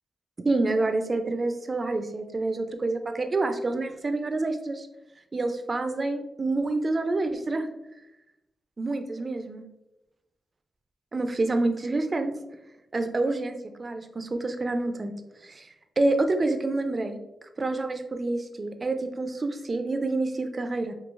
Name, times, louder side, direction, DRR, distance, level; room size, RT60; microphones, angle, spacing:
voice 1, 0.4-4.9 5.3-7.7 8.8-9.6 11.1-12.3 12.9-15.1 15.4-15.7 16.0-17.2 17.6-20.9, right 2 dB, 45° right, 7 dB, 0.4 m, -27 dB
3.8 x 2.6 x 2.5 m, 0.94 s
cardioid pair, 50°, 0 cm